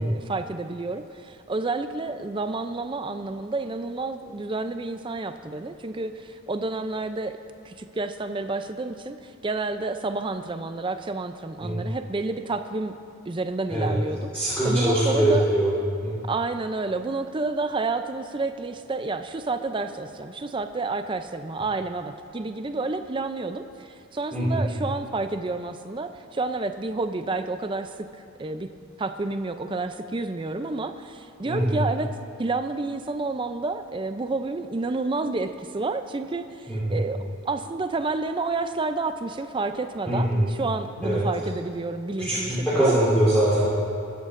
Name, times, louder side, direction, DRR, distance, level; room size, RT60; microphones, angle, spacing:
voice 1, 0.0-7.3 7.6-12.9 13.3-15.4 16.3-27.9 28.4-28.7 29.0-32.1 32.4-37.2 37.5-42.9, right 3 dB, 25° right, 9 dB, 0.4 m, -30 dB
voice 2, 14.3-15.7 16.0-16.1 24.3-24.6 31.4-31.8 36.7-37.0 40.0-40.4 41.0-41.2 42.2-43.7, right 1 dB, 5° left, -12 dB, 3.3 m, -22 dB
22.5 x 10.5 x 2.6 m, 2.4 s
head